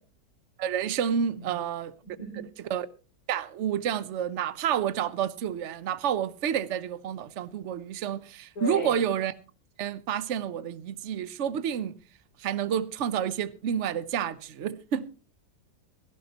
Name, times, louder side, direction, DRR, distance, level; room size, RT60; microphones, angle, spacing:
voice 1, 0.6-1.9 2.7-2.9 3.3-9.3 9.8-12.0 12.4-15.1, right 9 dB, 50° right, 1.0 m, -29 dB
voice 2, 2.0-2.4 8.6-9.1, left 1 dB, 55° left, 5.7 m, -36 dB
17.0 x 15.5 x 2.9 m
omnidirectional pair, 1.9 m